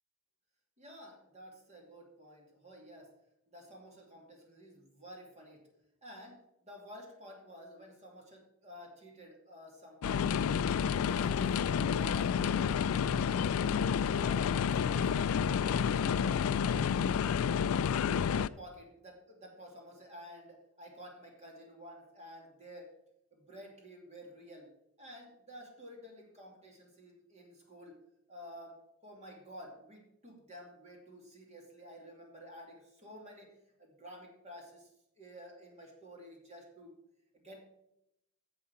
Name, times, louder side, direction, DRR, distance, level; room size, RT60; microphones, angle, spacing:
voice 1, 0.8-3.1 3.5-5.6 6.0-10.6 11.1-12.3 14.1-15.6 15.9-16.6 18.2-19.1 19.4-22.9 23.3-24.7 25.0-28.0 28.3-33.5 33.8-34.9 35.2-36.9 37.3-37.6, equal, 30° right, 0 dB, 2.6 m, -51 dB
sound 1, 10.0-18.5, left 7 dB, 80° left, 0.3 m, -30 dB
11.0 x 7.7 x 4.7 m, 0.83 s
head